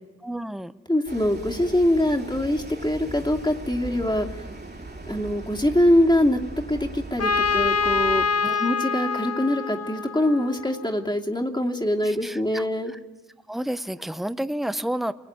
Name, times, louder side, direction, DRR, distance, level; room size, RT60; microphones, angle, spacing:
voice 1, 0.2-0.7 8.4-8.6 12.0-12.7 12.9-13.0 13.5-15.1, right 1 dB, ahead, 12 dB, 1.0 m, -30 dB
voice 2, 0.9-4.5 5.1-6.4 6.7-8.2 8.6-12.9, left 1 dB, 15° left, 1 dB, 2.8 m, -23 dB
sound 1, 1.1-8.3, right 2 dB, 35° right, 3.1 m, -39 dB
Trumpet, 7.2-10.9, left 5 dB, 55° left, 1.4 m, -25 dB
29.0 x 20.5 x 9.6 m, 1.1 s
cardioid pair, 55°, 30 cm